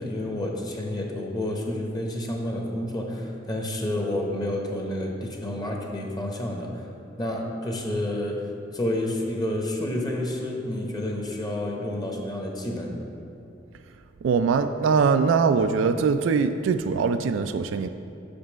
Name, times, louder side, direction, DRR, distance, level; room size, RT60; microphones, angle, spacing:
voice 1, 0.0-6.9 7.2-8.4 8.7-13.0, left 1 dB, 20° left, 0 dB, 0.8 m, -29 dB
voice 2, 14.2-17.9, right 5 dB, 85° right, 9 dB, 0.3 m, -22 dB
6.1 x 5.2 x 6.1 m, 2.8 s
head